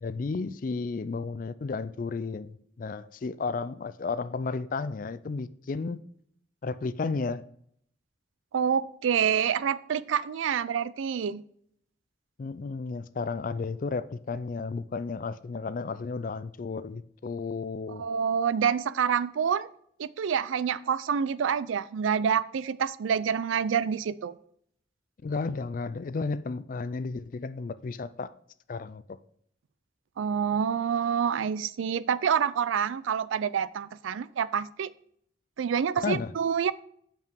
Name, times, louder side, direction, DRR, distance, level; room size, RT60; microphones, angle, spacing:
voice 1, 0.0-6.0 6.6-7.4 12.4-18.1 25.2-28.3 28.7-29.2 36.0-36.3, left 4 dB, 45° left, 0.3 m, -33 dB
voice 2, 8.5-11.4 18.0-19.7 20.0-24.3 30.2-34.9 35.6-36.7, right 7 dB, 80° right, 0.4 m, -27 dB
7.1 x 5.6 x 4.5 m
head